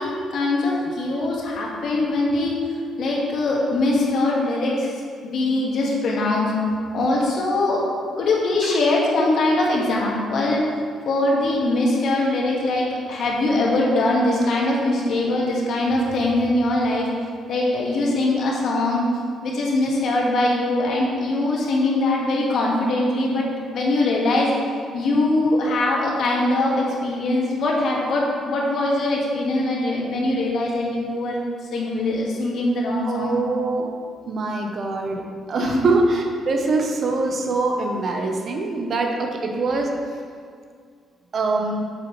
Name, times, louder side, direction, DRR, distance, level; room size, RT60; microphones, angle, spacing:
voice 1, 0.0-2.6 3.0-6.5 6.9-7.8 8.2-10.7 11.0-17.1 17.5-19.0 19.4-24.5 24.9-31.4 31.7-33.4 35.6-35.8, left 2 dB, 70° left, -3 dB, 1.8 m, -22 dB
voice 2, 33.0-33.9 34.3-40.2 41.3-41.9, right 3 dB, 55° right, 2 dB, 1.0 m, -23 dB
8.4 x 7.4 x 3.3 m, 2.1 s
cardioid pair, 90°, 0 cm